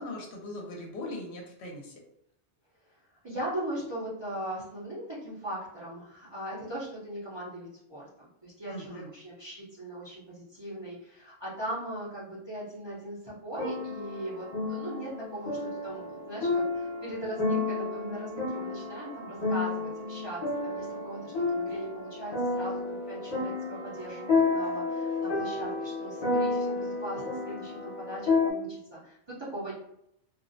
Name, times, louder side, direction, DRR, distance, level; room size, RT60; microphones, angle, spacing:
voice 1, 0.0-1.9 8.7-9.1, left 1 dB, 75° left, 0 dB, 0.9 m, -40 dB
voice 2, 3.2-29.7, right 1 dB, 30° right, -8 dB, 0.6 m, -39 dB
sound 1, 13.5-28.5, left 3 dB, 45° left, 0.6 m, -31 dB
2.4 x 2.0 x 2.5 m, 0.75 s
omnidirectional pair, 1.2 m